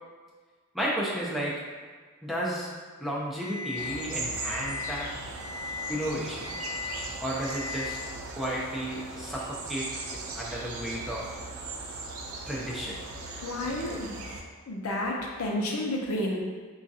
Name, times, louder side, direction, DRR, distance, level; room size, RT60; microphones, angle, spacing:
voice 1, 0.7-1.5 2.2-2.7 3.0-5.1 5.9-6.5 7.2-8.0 8.3-9.9 10.3-11.3 12.5-12.9, equal, ahead, -6 dB, 0.4 m, -32 dB
Alarm, 3.4-3.9 4.4-4.9 5.4-5.9 6.4-6.9 7.4-7.9, left 4 dB, 20° right, 1.1 m, -38 dB
sound 1, 3.8-14.4, right 3 dB, 70° right, 0.5 m, -39 dB
voice 2, 13.4-14.2 14.7-16.4, left 1 dB, 75° left, -1 dB, 0.6 m, -31 dB
4.8 x 2.4 x 2.6 m, 1.5 s
head